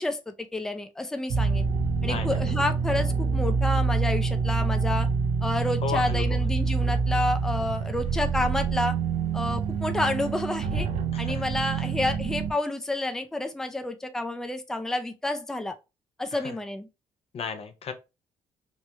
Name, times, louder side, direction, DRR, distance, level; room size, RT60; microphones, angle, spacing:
voice 1, 0.0-1.7 2.0-5.1 5.4-9.0 9.3-10.9 11.2-15.7 16.2-16.9, left 2 dB, 5° left, 0.5 m, -29 dB
sound 1, 1.3-12.5, right 5 dB, 65° right, 0.6 m, -26 dB
voice 2, 2.0-2.4 5.8-6.4 11.1-11.4 16.3-16.5 17.3-17.9, left 6 dB, 55° left, 0.6 m, -34 dB
3.1 x 2.2 x 2.9 m
supercardioid pair, 65°, 12 cm